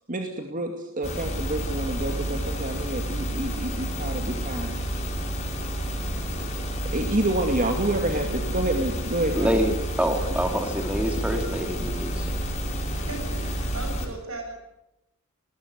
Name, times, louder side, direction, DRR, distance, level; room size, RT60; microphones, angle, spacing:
voice 1, 0.1-4.7 6.9-9.5, right 1 dB, 40° right, 4 dB, 2.4 m, -28 dB
sound 1, 1.0-14.1, right 1 dB, 35° left, 7.7 m, -30 dB
voice 2, 9.3-12.3, equal, 5° right, 4 dB, 2.8 m, -26 dB
voice 3, 12.9-14.6, right 2 dB, 80° right, 4 dB, 7.1 m, -37 dB
21.5 x 20.0 x 9.6 m, 0.89 s
head